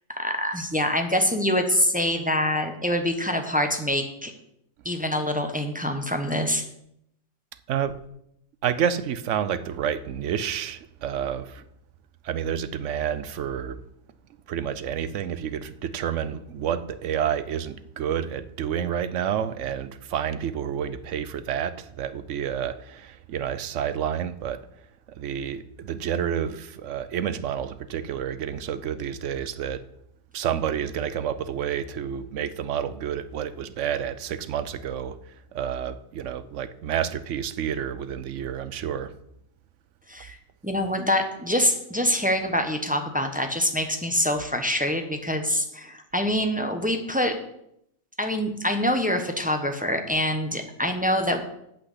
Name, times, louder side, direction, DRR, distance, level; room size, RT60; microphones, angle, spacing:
voice 1, 0.2-4.3 4.8-6.6 40.1-40.4 40.6-47.4 48.2-51.4, left 1 dB, 5° right, 5 dB, 0.8 m, -25 dB
voice 2, 8.6-11.6 12.2-13.8 14.5-24.6 25.1-29.8 30.3-35.2 35.5-39.1, right 9 dB, 65° right, 14 dB, 0.9 m, -29 dB
8.4 x 6.1 x 8.0 m, 0.77 s
omnidirectional pair, 1.4 m